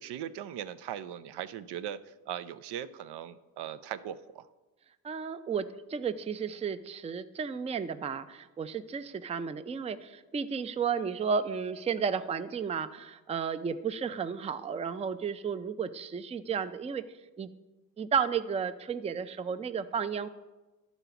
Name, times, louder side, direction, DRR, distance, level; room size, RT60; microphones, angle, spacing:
voice 1, 0.0-4.5, right 10 dB, 80° right, 13 dB, 0.5 m, -39 dB
voice 2, 5.0-17.0 17.4-17.5 18.0-20.3, right 6 dB, 15° right, 12 dB, 0.3 m, -33 dB
11.5 x 4.0 x 5.7 m, 1.1 s
cardioid pair, 80°, 40 cm